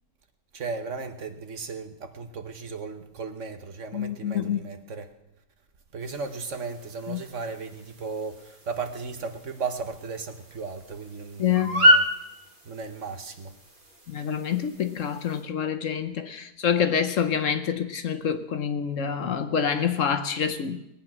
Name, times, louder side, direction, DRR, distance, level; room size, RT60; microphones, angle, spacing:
voice 1, 0.5-5.1 5.9-12.0 12.6-13.5, right 4 dB, 55° right, 1.4 m, -36 dB
voice 2, 3.9-4.6 7.1-7.2 11.4-11.9 14.1-20.8, left 8 dB, 60° left, 1.1 m, -27 dB
sound 1, 6.0-15.4, equal, 35° right, 1.8 m, -29 dB
20.5 x 8.7 x 6.0 m
omnidirectional pair, 1.6 m